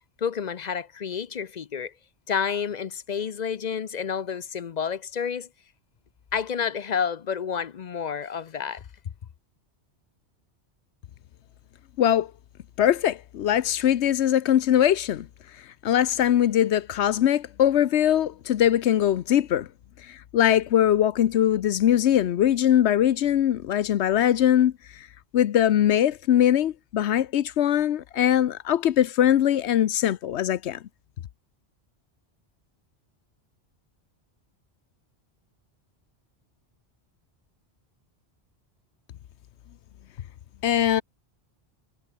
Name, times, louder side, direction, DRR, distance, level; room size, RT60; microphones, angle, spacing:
voice 1, 0.2-1.9 2.3-5.5 6.3-8.8, left 7 dB, 50° left, 0.6 m, -29 dB
voice 2, 12.8-15.2 15.8-19.7 20.3-24.7 25.3-30.8 40.6-41.0, left 11 dB, 80° left, 0.9 m, -21 dB
omnidirectional pair, 1.1 m